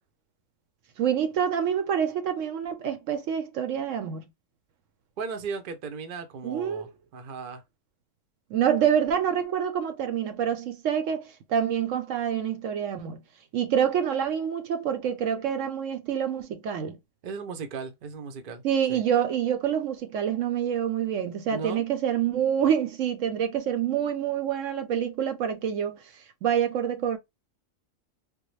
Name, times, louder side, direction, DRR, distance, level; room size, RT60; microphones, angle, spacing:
voice 1, 1.0-4.2 6.4-6.8 8.5-13.2 13.5-17.0 18.6-26.0 26.4-27.2, right 8 dB, 70° right, 1.0 m, -27 dB
voice 2, 5.2-7.6 17.2-18.6 18.9-19.0 21.5-21.8, right 5 dB, 50° right, 0.7 m, -36 dB
3.5 x 2.2 x 3.1 m
omnidirectional pair, 1.4 m